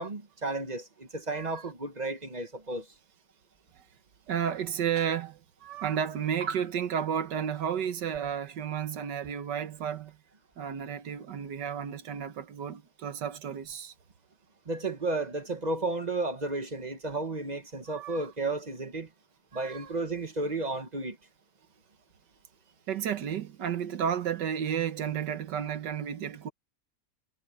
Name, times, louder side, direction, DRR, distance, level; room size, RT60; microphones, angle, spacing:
voice 1, 0.0-2.9 14.7-19.1 19.5-21.2, right 2 dB, 25° right, 1.2 m, -33 dB
voice 2, 1.3-1.7 4.3-10.1 10.6-13.9 17.9-18.2 19.5-19.9 22.9-26.5, right 8 dB, 80° right, 1.7 m, -32 dB
omnidirectional pair, 1.9 m